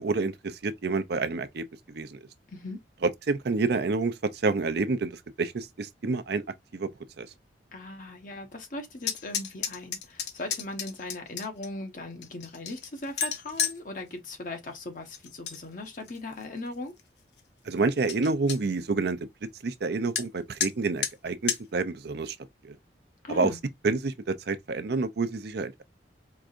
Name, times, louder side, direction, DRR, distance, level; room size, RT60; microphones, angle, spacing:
voice 1, 0.0-2.2 3.3-6.4 6.7-6.9 7.2-7.3 17.7-19.2 19.6-22.4 22.6-22.8 23.3-23.5 23.8-25.8, right 3 dB, 65° right, 0.5 m, -28 dB
voice 2, 2.5-2.8 7.7-17.0 23.2-23.6, left 2 dB, 50° left, 1.1 m, -39 dB
sound 1, 9.0-11.7 12.2-13.8 15.1-15.6 15.9-16.4 17.0-17.1 17.4-17.5 17.8-17.9 18.1-18.6 20.2-20.3 20.6-20.7 21.0-21.1 21.5-21.6, left 7 dB, 70° left, 0.8 m, -31 dB
4.7 x 2.6 x 2.5 m
head